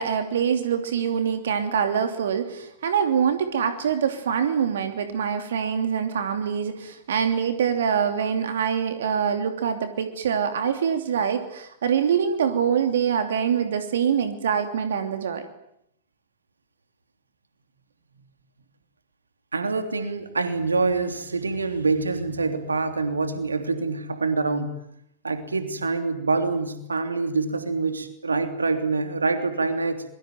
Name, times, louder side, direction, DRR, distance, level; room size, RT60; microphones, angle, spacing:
voice 1, 0.0-15.4, right 7 dB, 70° right, 7 dB, 2.9 m, -24 dB
voice 2, 19.5-24.7 25.2-30.0, right 3 dB, 85° right, 8 dB, 3.1 m, -25 dB
25.5 x 23.0 x 9.3 m, 0.75 s
figure-of-eight pair, 100°, 0 cm